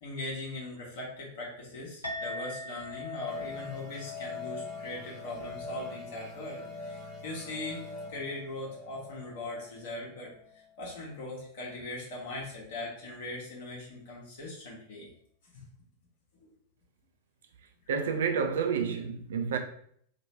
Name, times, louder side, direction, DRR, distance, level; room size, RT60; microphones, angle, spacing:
voice 1, 0.0-10.3 10.8-15.1 16.4-16.5, left 2 dB, 55° left, 1.1 m, -40 dB
Chink clink, 2.0-10.7, left 5 dB, 85° left, 0.9 m, -43 dB
sound 1, 3.3-10.5, equal, 20° right, 1.0 m, -46 dB
voice 2, 17.9-19.6, right 6 dB, 60° right, 0.5 m, -29 dB
3.0 x 2.5 x 4.2 m
figure-of-eight pair, 90°, 0 cm